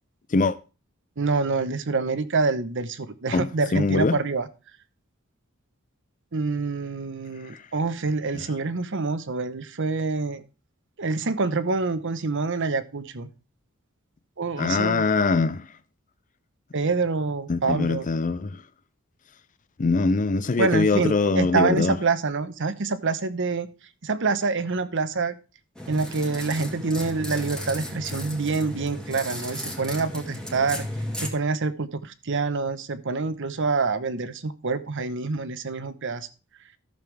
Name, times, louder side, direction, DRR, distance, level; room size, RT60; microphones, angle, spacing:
voice 1, 1.2-4.5 6.3-10.4 11.0-13.3 14.4-15.0 16.7-18.0 20.6-23.7 24.0-25.3 25.9-30.9 31.2-36.3, right 4 dB, 60° right, 1.0 m, -26 dB
voice 2, 3.3-4.2 7.4-7.6 8.3-8.4 14.6-15.7 17.5-18.6 19.8-22.0, left 3 dB, 35° left, 0.5 m, -23 dB
sound 1, 25.8-31.3, left 1 dB, 5° left, 2.1 m, -34 dB
14.0 x 6.9 x 3.4 m
head